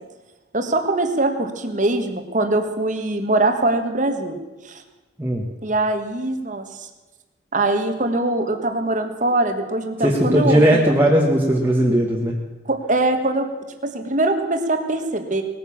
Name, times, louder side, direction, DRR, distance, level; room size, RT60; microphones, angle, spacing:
voice 1, 0.5-4.4 4.6-4.8 5.6-6.9 7.5-10.9 12.7-13.5 13.8-15.4, right 2 dB, 40° right, 6 dB, 1.5 m, -22 dB
voice 2, 10.0-12.4, equal, 10° right, -3 dB, 1.4 m, -17 dB
19.0 x 9.6 x 7.2 m, 1.2 s
head